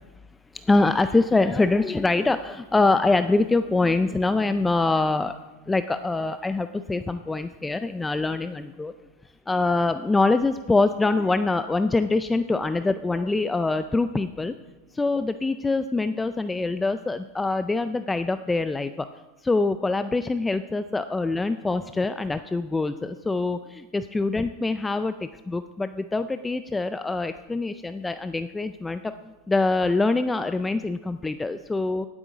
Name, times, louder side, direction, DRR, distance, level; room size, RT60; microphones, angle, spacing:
voice 1, 0.7-5.3 5.7-8.9 9.5-14.5 14.9-19.1 19.4-25.1 25.5-29.1 29.5-32.1, left 3 dB, 10° left, 10 dB, 0.4 m, -24 dB
17.5 x 8.6 x 5.0 m, 1.2 s
supercardioid pair, 145°, 0 cm